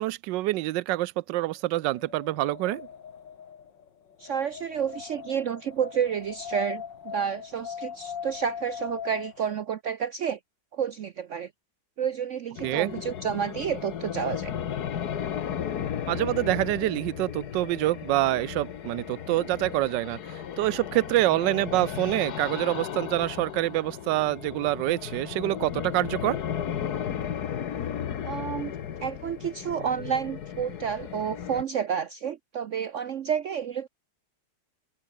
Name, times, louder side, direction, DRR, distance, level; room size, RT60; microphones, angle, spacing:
voice 1, 0.0-2.9 12.6-12.9 16.1-20.2 20.6-26.4, right 16 dB, 85° right, 1.3 m, -26 dB
Wind, 1.6-9.6, left 7 dB, 85° left, 2.3 m, -40 dB
voice 2, 4.2-10.4 10.7-11.5 12.0-14.5 28.2-28.7 29.0-33.9, right 8 dB, 60° right, 0.8 m, -30 dB
sound 1, 12.6-31.6, left 9 dB, 65° left, 1.7 m, -35 dB
omnidirectional pair, 1.9 m